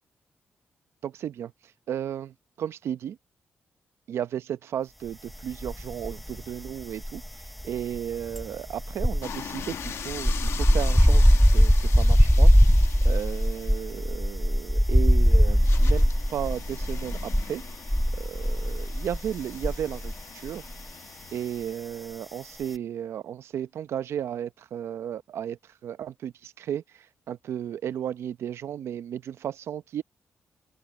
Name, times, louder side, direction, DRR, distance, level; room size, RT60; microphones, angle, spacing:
voice 1, 1.0-1.5 1.9-3.2 4.1-7.2 7.6-11.3 11.5-12.5 13.0-17.6 18.1-20.6 21.3-26.8 27.3-30.0, right 10 dB, 80° right, 0.8 m, -34 dB
sound 1, 5.6-6.4 6.7-20.2 20.5-20.7, equal, ahead, 0.7 m, -21 dB
sound 2, 9.2-21.8, left 8 dB, 75° left, 1.2 m, -42 dB
open air
supercardioid pair, 55°, 4 cm